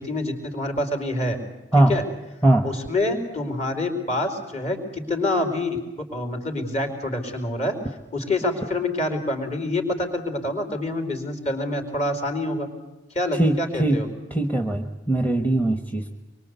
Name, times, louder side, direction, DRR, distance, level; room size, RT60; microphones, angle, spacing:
voice 1, 0.0-1.4 1.9-2.0 2.6-5.8 6.1-7.7 8.1-12.7 13.1-14.1, left 1 dB, 35° left, 5 dB, 4.7 m, -26 dB
voice 2, 13.3-14.0 14.3-16.1, right 1 dB, 10° left, 6 dB, 1.3 m, -21 dB
25.0 x 24.0 x 8.2 m, 1.0 s
head